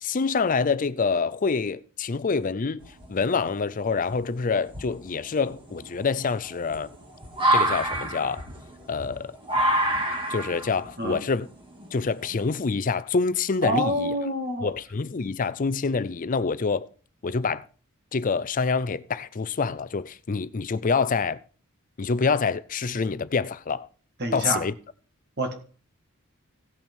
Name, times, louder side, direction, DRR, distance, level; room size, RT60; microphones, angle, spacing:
voice 1, 0.0-6.9 7.5-8.5 8.9-9.3 10.3-11.5 11.9-14.2 14.6-16.9 17.2-17.6 18.1-21.4 22.0-23.9 24.3-24.7, left 4 dB, 40° left, 0.5 m, -26 dB
sound 1, 2.8-3.4 4.1-4.2 4.7-12.7, right 1 dB, 25° right, 1.9 m, -28 dB
voice 2, 13.6-14.7 24.2-24.6 25.4-25.5, right 1 dB, 50° right, 1.8 m, -27 dB
17.0 x 5.9 x 4.5 m
head